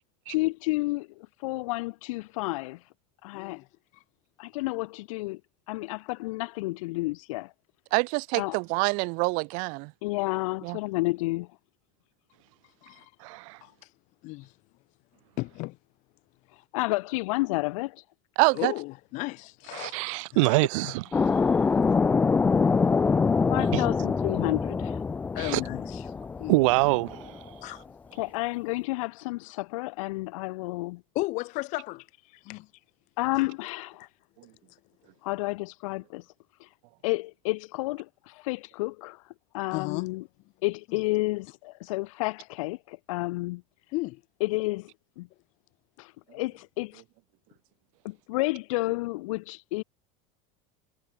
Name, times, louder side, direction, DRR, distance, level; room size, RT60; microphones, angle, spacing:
voice 1, 0.3-2.9 3.2-3.6 4.4-5.4 5.7-7.5 8.3-8.6 10.0-11.5 16.7-18.0 23.5-25.0 28.1-31.0 33.2-34.1 35.2-36.3 36.6-36.7 37.0-40.2 40.6-43.6 44.4-44.8 46.0-47.0 48.0-49.8, left 22 dB, 70° left, 1.2 m, -31 dB
voice 2, 3.3-3.6 12.8-13.1 13.6-13.7 14.2-14.5 15.4-15.8 18.5-20.0 25.3-26.0 26.4-26.6 27.6-27.8 31.1-32.1 32.3-32.7 33.4-33.5 39.7-40.1 43.9-44.2, left 22 dB, 45° left, 3.4 m, -34 dB
voice 3, 7.9-9.9 10.6-10.8 18.4-18.7, right 31 dB, 50° right, 1.5 m, -25 dB
voice 4, 13.2-13.6 19.7-21.0 23.7-23.8 25.4-25.6 26.5-27.6, right 24 dB, 65° right, 3.1 m, -25 dB
sound 1, 21.1-27.5, left 5 dB, 10° left, 0.4 m, -25 dB
supercardioid pair, 165°, 17 cm